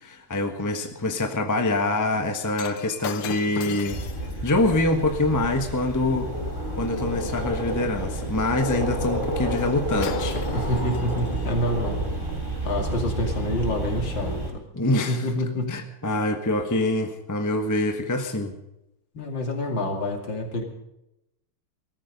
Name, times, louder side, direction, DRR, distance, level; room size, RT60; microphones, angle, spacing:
voice 1, 0.0-4.0 4.4-6.3 6.8-10.4 14.7-15.2 15.7-18.5, left 2 dB, 10° left, 5 dB, 1.1 m, -25 dB
Shatter, 2.5-6.9 9.6-9.7 10.0-11.5 12.3-12.4, left 10 dB, 80° left, 1.8 m, -39 dB
sound 1, 3.9-14.5, right 1 dB, 25° right, 3.4 m, -29 dB
voice 2, 10.5-12.1 12.6-14.6 15.1-15.8 19.1-20.6, left 1 dB, 60° left, 3 dB, 3.2 m, -27 dB
18.0 x 14.0 x 5.3 m, 0.86 s
omnidirectional pair, 2.4 m